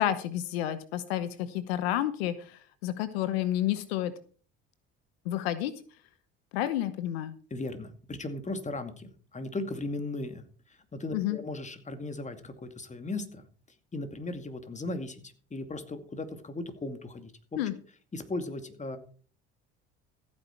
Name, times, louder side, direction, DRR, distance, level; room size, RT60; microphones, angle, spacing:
voice 1, 0.0-4.1 5.2-5.7 6.5-7.3 11.1-11.4 17.6-17.7, left 12 dB, 90° left, 14 dB, 1.0 m, -30 dB
voice 2, 7.5-13.4 13.9-17.3 18.1-19.0, left 2 dB, 25° left, 8 dB, 2.3 m, -37 dB
14.5 x 8.9 x 4.5 m, 0.42 s
supercardioid pair, 70°, 30 cm